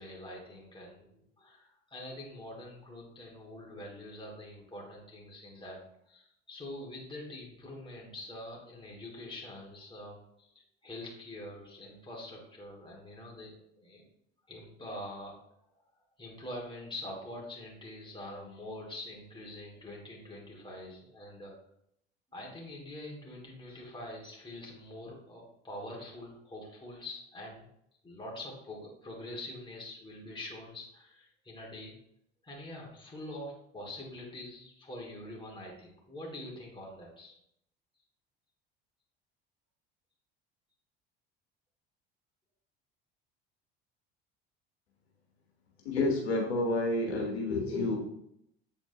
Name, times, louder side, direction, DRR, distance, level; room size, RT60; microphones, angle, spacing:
voice 1, 0.0-5.8 6.1-14.1 14.5-15.3 16.2-21.5 22.3-27.7 28.0-31.9 32.4-37.3, left 1 dB, 15° left, -2 dB, 2.4 m, -45 dB
voice 2, 45.8-48.0, left 2 dB, 85° left, -1 dB, 1.2 m, -29 dB
7.7 x 4.4 x 3.0 m, 0.75 s
hypercardioid pair, 65°, 31 cm